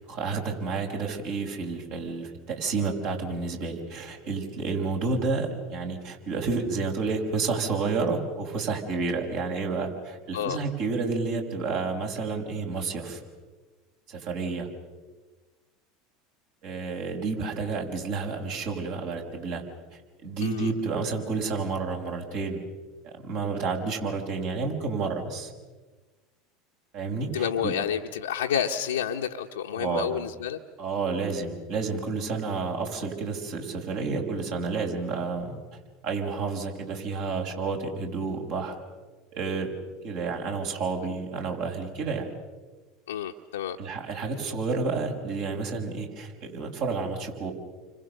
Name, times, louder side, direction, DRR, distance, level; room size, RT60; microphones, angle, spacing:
voice 1, 0.0-13.2 14.1-14.7 16.6-19.6 20.2-22.6 23.0-25.5 26.9-27.7 29.7-30.1 30.8-35.6 36.0-38.8 39.3-39.7 40.0-42.3 43.8-47.5, right 4 dB, 65° right, 2 dB, 5.6 m, -30 dB
voice 2, 20.4-20.7 27.3-30.6 43.1-43.8, left 8 dB, 90° left, 1 dB, 1.0 m, -29 dB
30.0 x 25.5 x 6.7 m, 1.3 s
hypercardioid pair, 85°, 0 cm